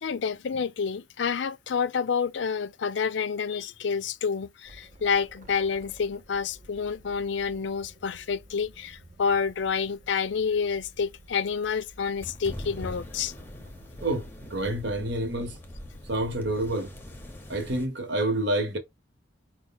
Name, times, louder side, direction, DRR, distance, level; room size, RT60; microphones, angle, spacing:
voice 1, 0.0-13.3, left 6 dB, 70° left, 0.4 m, -28 dB
sound 1, 4.6-17.4, right 1 dB, 40° right, 0.7 m, -53 dB
sound 2, 12.2-17.9, left 1 dB, 10° left, 0.7 m, -42 dB
voice 2, 14.0-15.6 16.1-16.9 17.5-18.8, right 1 dB, 65° right, 1.1 m, -28 dB
5.0 x 2.2 x 3.9 m
head